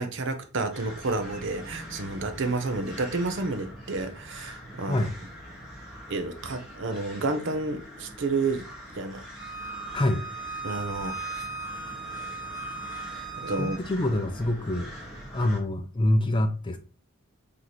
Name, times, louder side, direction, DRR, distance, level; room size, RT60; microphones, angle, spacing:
voice 1, 0.0-5.1 6.1-8.7 8.9-9.2 10.6-11.4 13.4-13.8, right 3 dB, 55° right, 0.6 m, -30 dB
sound 1, 0.7-15.6, equal, ahead, 1.2 m, -43 dB
Bowed string instrument, 9.3-13.8, right 4 dB, 20° right, 1.3 m, -37 dB
voice 2, 13.6-14.9 15.3-16.8, left 1 dB, 20° left, 0.4 m, -25 dB
3.1 x 2.8 x 3.9 m
head